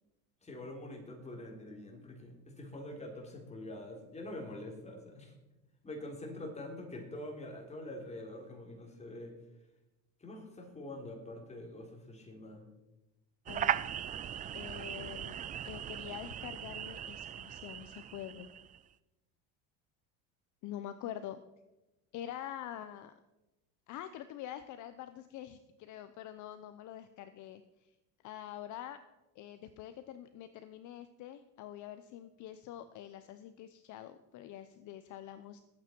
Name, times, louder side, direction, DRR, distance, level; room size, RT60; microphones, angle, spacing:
voice 1, 0.4-5.3 5.8-9.3 10.2-12.7, left 1 dB, 15° left, 0 dB, 3.6 m, -45 dB
sound 1, 13.5-18.8, right 10 dB, 20° right, 0.3 m, -38 dB
voice 2, 14.5-15.4 15.6-18.5 20.6-21.4 22.1-23.1 23.9-27.6 28.2-29.0 29.4-35.6, left 11 dB, 50° left, 11 dB, 0.8 m, -45 dB
19.0 x 8.6 x 4.6 m, 1.0 s
supercardioid pair, 120°, 39 cm